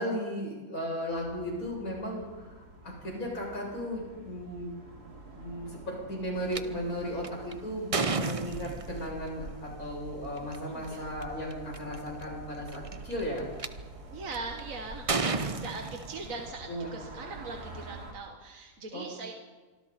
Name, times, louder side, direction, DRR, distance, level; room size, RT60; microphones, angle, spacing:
voice 1, 0.0-4.8 5.3-13.5 16.7-16.9 18.9-19.1, equal, 65° left, -2 dB, 8.0 m, -36 dB
sound 1, 1.1-18.1, right 2 dB, 85° right, 3.5 m, -47 dB
sound 2, 6.5-6.6 7.2-9.1 10.4-10.6 11.2-11.3 11.5-12.0 12.7-13.7 14.3-14.6 15.1-16.5, right 4 dB, 30° right, 0.6 m, -31 dB
voice 2, 10.7-11.1 14.1-19.3, right 3 dB, 60° right, 2 dB, 2.0 m, -41 dB
26.0 x 24.0 x 4.4 m, 1.3 s
omnidirectional pair, 1.6 m